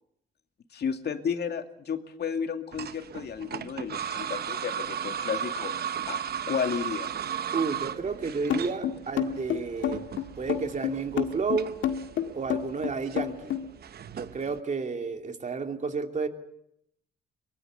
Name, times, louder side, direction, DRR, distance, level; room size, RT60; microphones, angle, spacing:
voice 1, 0.7-5.7 6.1-7.1, left 7 dB, 55° left, 6 dB, 2.5 m, -32 dB
sound 1, 2.7-14.6, right 9 dB, 55° right, 0.9 m, -36 dB
voice 2, 7.5-10.1 10.4-11.7 12.3-13.5 14.1-16.3, right 4 dB, 40° right, 5 dB, 3.0 m, -31 dB
sound 2, 8.5-13.7, left 10 dB, 75° left, 1.9 m, -28 dB
23.5 x 20.5 x 8.2 m, 0.75 s
cardioid pair, 90°, 20 cm